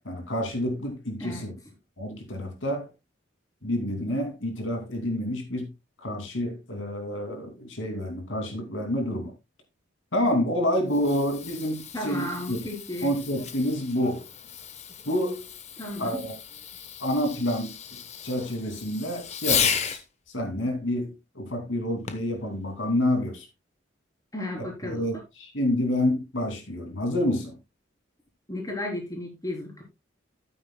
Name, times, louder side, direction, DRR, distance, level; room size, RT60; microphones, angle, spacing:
voice 1, 0.0-1.5 2.0-2.9 3.6-5.7 6.0-9.3 10.1-12.6 13.0-14.2 15.1-15.5 16.0-16.4 17.0-20.0 20.3-23.5 24.5-27.6, left 1 dB, 80° left, 2.6 m, -28 dB
voice 2, 1.2-1.5 11.9-13.1 15.8-16.2 24.3-25.2 28.5-29.8, left 1 dB, 20° left, 3.9 m, -34 dB
Fireworks, 10.7-20.0 22.1-22.4 23.1-23.2, left 8 dB, 35° left, 1.0 m, -34 dB
13.0 x 9.2 x 2.2 m
head